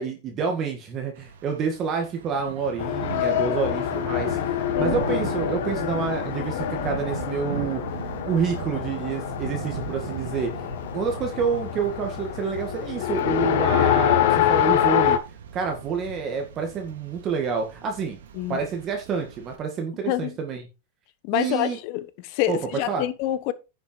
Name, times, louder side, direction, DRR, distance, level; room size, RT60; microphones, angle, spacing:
voice 1, 0.0-7.8 8.2-10.5 10.9-15.2 15.5-18.2 18.5-20.6 21.3-21.8 22.5-22.6 22.9-23.0, right 5 dB, 25° right, 2.0 m, -28 dB
Thunder / Rain, 1.2-19.6, right 7 dB, 90° right, 2.6 m, -38 dB
Race car auto racing, 2.8-15.2, left 11 dB, 60° left, 1.5 m, -25 dB
voice 2, 20.1-20.4 21.2-23.5, left 14 dB, 45° left, 1.1 m, -27 dB
10.5 x 6.9 x 4.6 m
supercardioid pair, 160°, 0 cm